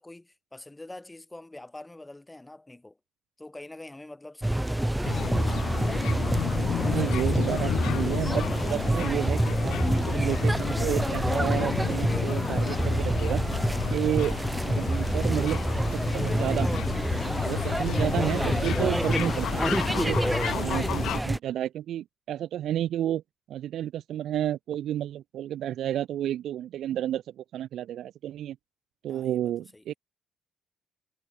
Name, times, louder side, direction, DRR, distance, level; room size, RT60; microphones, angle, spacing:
voice 1, 0.0-3.0 3.4-5.5 6.2-7.6 17.4-17.8 29.1-29.8, left 2 dB, 15° left, 5.8 m, -46 dB
sound 1, 4.4-21.4, right 1 dB, 5° right, 1.5 m, -27 dB
sound 2, 4.5-9.7, left 5 dB, 40° left, 6.9 m, -49 dB
sound 3, 5.0-21.2, left 12 dB, 80° left, 0.4 m, -32 dB
voice 2, 6.8-13.4 13.9-15.6 15.9-16.8 17.5-20.2 20.5-23.2 23.5-28.6 29.0-29.9, right 11 dB, 75° right, 0.4 m, -31 dB
cardioid pair, 90°, 0 cm